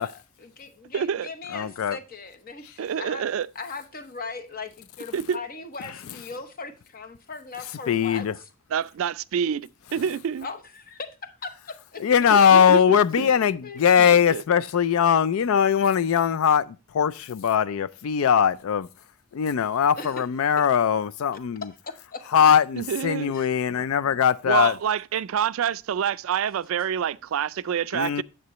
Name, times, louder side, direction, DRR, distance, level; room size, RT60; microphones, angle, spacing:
voice 1, 0.0-3.3 3.5-8.5 10.4-12.0 12.4-12.7 13.6-13.8 19.9-20.2 20.6-20.7 21.9-22.2 23.2-23.6, left 4 dB, 45° left, 0.9 m, -39 dB
voice 2, 0.9-1.3 2.8-3.5 5.1-5.4 8.7-10.5 12.3-13.3 14.0-14.4 22.8-23.3 24.5-28.2, right 8 dB, 70° right, 0.3 m, -27 dB
voice 3, 1.5-2.0 7.9-8.3 12.0-18.9 19.3-21.7 22.3-24.7 27.9-28.2, left 7 dB, 80° left, 0.4 m, -21 dB
9.5 x 7.3 x 3.0 m
head